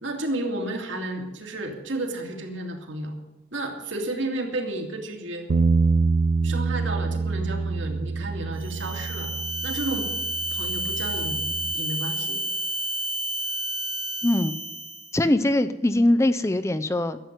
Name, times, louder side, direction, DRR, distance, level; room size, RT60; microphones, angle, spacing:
voice 1, 0.0-3.1 3.5-5.5 6.4-9.3 9.6-10.1 10.5-11.4 11.7-12.4, right 1 dB, 70° right, 2 dB, 2.4 m, -32 dB
Bass guitar, 5.5-11.7, right 4 dB, 50° right, 0.4 m, -26 dB
sound 1, 8.6-15.2, right 1 dB, 25° right, 0.9 m, -30 dB
voice 2, 14.2-14.6 15.1-17.2, left 1 dB, 15° left, 13 dB, 0.4 m, -22 dB
12.5 x 8.1 x 9.5 m, 0.98 s
head